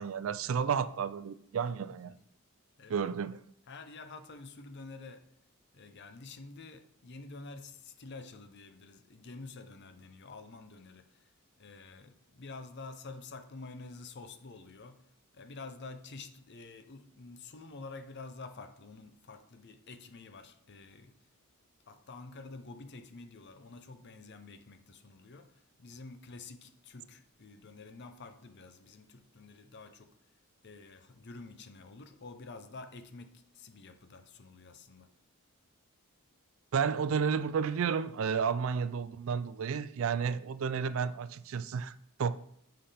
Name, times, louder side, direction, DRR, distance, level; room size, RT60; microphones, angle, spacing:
voice 1, 0.0-2.1 2.9-3.4 36.7-41.9 42.2-42.4, right 6 dB, 65° right, 0.4 m, -31 dB
voice 2, 3.7-5.3 5.7-21.3 21.9-30.2 30.6-35.1, left 3 dB, 50° left, 0.7 m, -49 dB
7.7 x 5.6 x 3.4 m
head